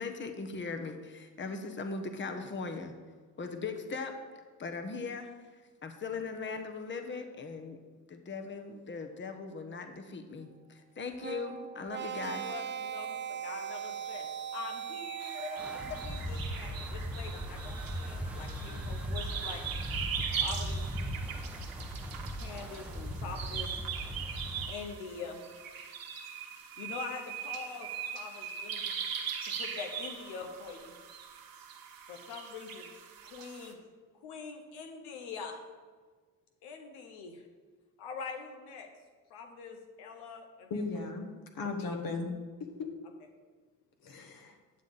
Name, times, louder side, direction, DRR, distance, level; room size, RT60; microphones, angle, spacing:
voice 1, 0.0-2.9 3.4-4.1 4.6-5.3 5.8-7.8 8.1-12.5, left 4 dB, 30° left, 5 dB, 1.0 m, -39 dB
sound 1, 11.2-16.3, right 8 dB, 30° right, 0.6 m, -39 dB
voice 2, 12.2-19.6 20.4-21.0 22.3-23.8 24.7-25.5 26.8-29.1 29.4-31.0 32.1-32.9 33.2-33.8 34.2-35.6 36.6-37.4 38.0-38.9 39.3-40.8 41.8-42.0, left 5 dB, 90° left, 4 dB, 1.0 m, -44 dB
sound 2, 15.2-33.7, right 7 dB, 60° right, 1.3 m, -40 dB
Wind, 15.6-24.7, equal, 5° right, 0.9 m, -38 dB
voice 3, 40.7-41.3 41.5-42.3 42.8-42.9 44.0-44.6, left 3 dB, 60° left, 4 dB, 1.6 m, -36 dB
9.6 x 7.2 x 4.0 m, 1.4 s
supercardioid pair, 75°, 39 cm